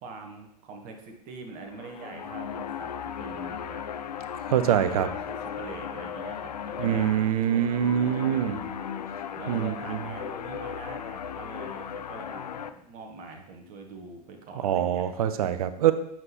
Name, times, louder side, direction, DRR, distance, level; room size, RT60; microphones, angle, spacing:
voice 1, 0.0-3.8 4.6-15.2, right 3 dB, 40° right, 3 dB, 1.2 m, -44 dB
sound 1, 1.6-12.7, left 8 dB, 70° left, 0.5 m, -36 dB
voice 2, 4.5-5.1 6.8-8.6 9.5-10.0 14.6-15.9, right 10 dB, 60° right, 12 dB, 0.6 m, -24 dB
7.7 x 5.6 x 3.0 m, 0.78 s
figure-of-eight pair, 90°, 21 cm